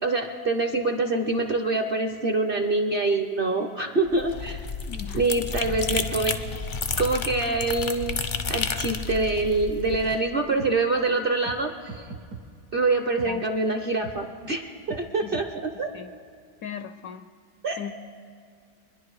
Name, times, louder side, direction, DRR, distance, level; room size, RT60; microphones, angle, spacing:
voice 1, 0.0-4.6 5.1-6.3 7.0-8.2 8.5-12.0 12.7-14.6 14.9-15.9 17.6-17.8, right 3 dB, 45° right, 6 dB, 0.8 m, -25 dB
sound 1, 4.1-10.2, left 5 dB, 50° left, 0.6 m, -31 dB
voice 2, 4.9-5.3 13.2-13.4 15.2-15.4 15.9-16.1 16.6-17.3 17.8-18.0, left 8 dB, 70° left, 10 dB, 0.9 m, -38 dB
sound 2, 10.6-10.7 11.5-11.6 11.9-12.4 13.2-13.3 14.0-14.2 14.9-15.0 15.3-15.5, right 4 dB, 60° right, 1.2 m, -39 dB
25.5 x 10.5 x 4.7 m, 2.2 s
omnidirectional pair, 1.8 m